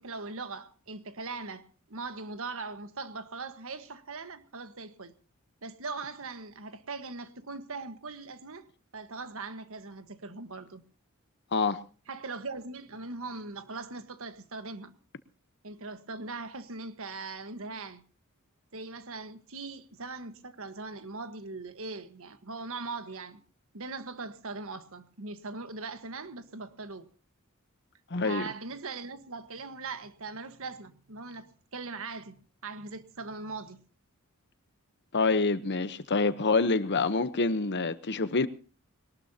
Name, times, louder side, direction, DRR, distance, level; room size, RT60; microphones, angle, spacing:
voice 1, 0.0-5.1 5.6-10.8 12.1-14.9 15.6-18.0 18.7-23.4 23.7-27.1 28.2-33.8, right 3 dB, 65° right, 1.5 m, -40 dB
voice 2, 28.1-28.5 35.1-38.5, left 3 dB, 55° left, 1.0 m, -26 dB
22.0 x 19.0 x 2.9 m
head